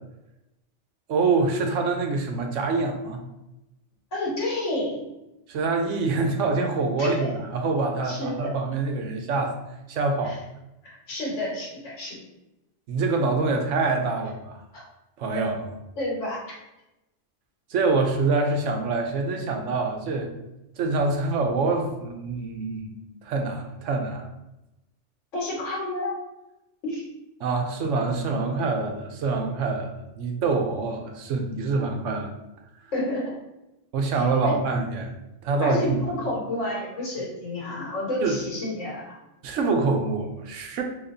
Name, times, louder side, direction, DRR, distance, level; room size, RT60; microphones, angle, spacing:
voice 1, 1.1-3.2 5.5-9.6 9.9-10.4 12.9-14.6 15.2-15.5 17.7-20.3 20.8-22.9 23.2-24.3 27.4-29.9 30.2-32.3 33.9-35.1 35.4-35.8 38.2-38.4 39.4-40.8, right 3 dB, 85° right, 3 dB, 1.0 m, -25 dB
voice 2, 4.1-5.0 7.0-7.4 8.0-8.5 10.2-10.4 10.8-12.2 14.7-14.8 16.0-16.6 25.3-26.1 26.8-27.1 32.9-33.4 34.4-34.6 35.6-39.2, left 1 dB, 80° left, -4 dB, 1.5 m, -30 dB
4.1 x 3.0 x 2.6 m, 0.94 s
omnidirectional pair, 1.2 m